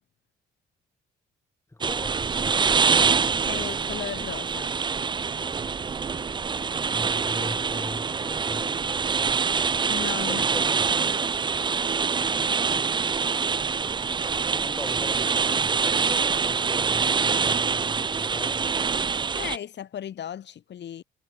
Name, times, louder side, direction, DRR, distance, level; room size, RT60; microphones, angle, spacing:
voice 1, 1.7-2.9 6.9-9.4 10.2-10.9 14.5-18.7, left 2 dB, 15° left, 6.1 m, -40 dB
sound 1, 1.8-19.6, right 5 dB, 25° right, 0.4 m, -25 dB
voice 2, 3.5-4.8 9.9-10.5 19.3-21.0, left 10 dB, 60° left, 3.0 m, -35 dB
cardioid pair, 90°, 20 cm